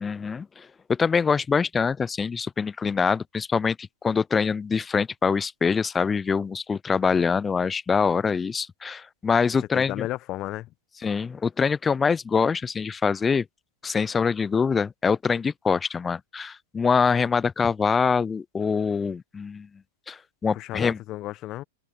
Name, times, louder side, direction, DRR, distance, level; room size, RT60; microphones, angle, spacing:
voice 1, 0.0-9.9 11.0-13.5 13.8-19.7 20.1-21.0, left 5 dB, 15° left, 0.3 m, -24 dB
voice 2, 9.7-10.7 20.5-21.6, left 16 dB, 40° left, 0.9 m, -33 dB
open air
hypercardioid pair, 105°, 0 cm